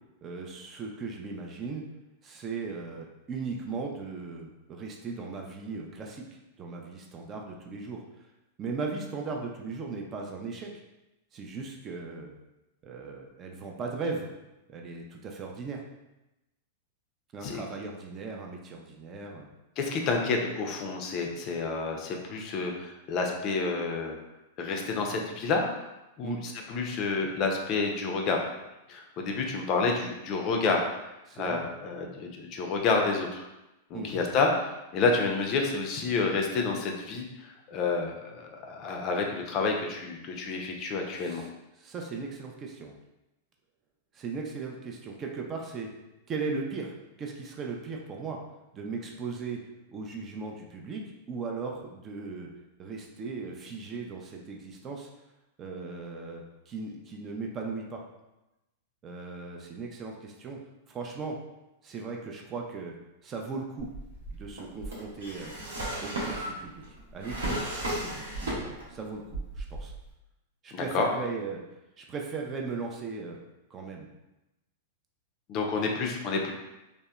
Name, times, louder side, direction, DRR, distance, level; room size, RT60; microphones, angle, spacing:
voice 1, 0.2-1.8 2.2-8.3 8.6-10.7 11.3-12.3 12.8-14.3 14.7-15.8 17.3-19.5 26.2-26.4 31.3-31.6 33.9-34.1 41.2-41.5 41.8-42.9 44.1-45.9 46.3-48.4 48.7-49.6 49.9-51.0 51.3-52.5 52.8-55.1 55.6-58.0 59.0-60.6 60.9-61.4 61.8-62.9 63.2-63.9 64.3-65.5 66.0-66.8 67.1-69.9 70.6-71.6 72.0-73.4 73.7-74.1, right 4 dB, 30° right, 1 dB, 0.4 m, -37 dB
voice 2, 19.8-24.2 24.6-25.7 26.2-28.4 28.9-30.9 31.4-33.5 33.9-41.4 70.7-71.1 75.5-76.5, left 4 dB, 40° left, 2 dB, 0.4 m, -29 dB
Drawer open or close, 63.8-69.0 69.3-70.1, right 1 dB, 90° right, 0.8 m, -35 dB
2.7 x 2.0 x 2.2 m, 0.96 s
hypercardioid pair, 115°, 0 cm